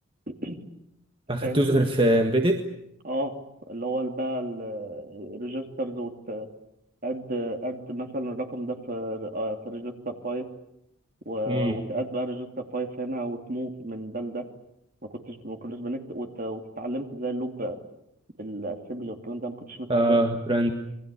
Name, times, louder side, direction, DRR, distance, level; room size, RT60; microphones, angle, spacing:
voice 1, 0.3-0.6 1.4-1.8 3.0-3.3 3.7-6.5 7.0-10.5 11.2-14.5 15.0-17.8 18.4-20.2, right 1 dB, 40° right, 4 dB, 2.8 m, -32 dB
voice 2, 1.3-2.6 11.5-11.8 19.9-20.7, right 1 dB, 25° right, 4 dB, 1.6 m, -22 dB
27.5 x 22.0 x 8.5 m, 0.80 s
head